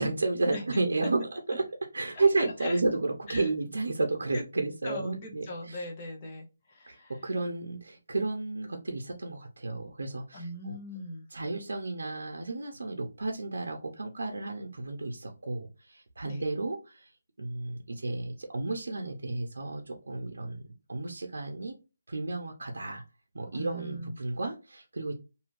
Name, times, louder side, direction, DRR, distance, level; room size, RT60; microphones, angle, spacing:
voice 1, 0.0-1.6 1.9-5.8 6.9-10.8 11.3-17.1 17.4-21.7 22.1-23.0 23.3-25.1, right 3 dB, 85° right, 0.6 m, -32 dB
voice 2, 2.1-2.8 3.3-3.5 4.3-4.4 4.8-7.2 10.3-11.3 16.2-16.4 23.5-24.2, left 1 dB, 15° left, 0.6 m, -40 dB
2.7 x 2.5 x 3.1 m
hypercardioid pair, 180°, 0 cm